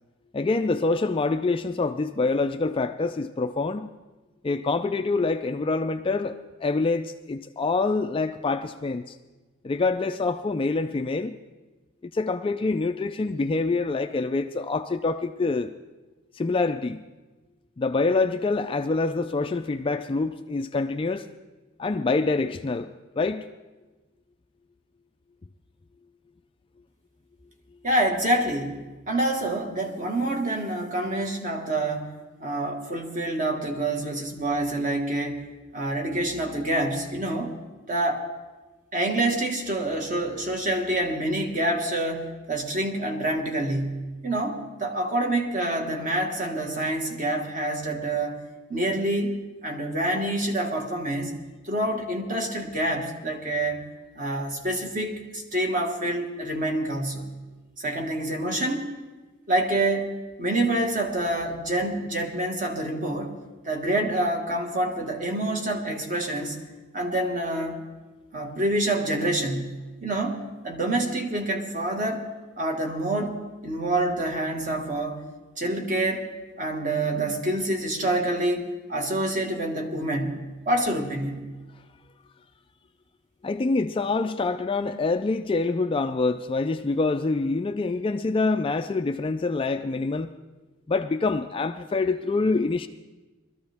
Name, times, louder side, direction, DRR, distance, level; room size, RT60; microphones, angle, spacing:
voice 1, 0.3-3.9 4.4-6.3 6.6-9.2 9.6-11.4 12.0-15.7 16.3-17.0 17.8-21.3 21.8-23.5 83.4-90.3 90.9-92.9, left 3 dB, 25° left, 8 dB, 0.3 m, -26 dB
voice 2, 27.8-32.1 32.4-35.4 35.7-37.5 37.9-38.3 38.9-48.4 48.7-49.4 49.6-51.3 51.6-53.9 54.1-57.4 57.8-58.9 59.5-60.1 60.4-63.3 63.6-66.6 66.9-67.8 68.3-72.3 72.6-73.3 73.6-75.2 75.6-76.3 76.6-81.5, right 1 dB, 35° right, 2 dB, 1.6 m, -27 dB
21.0 x 13.5 x 3.5 m, 1.2 s
head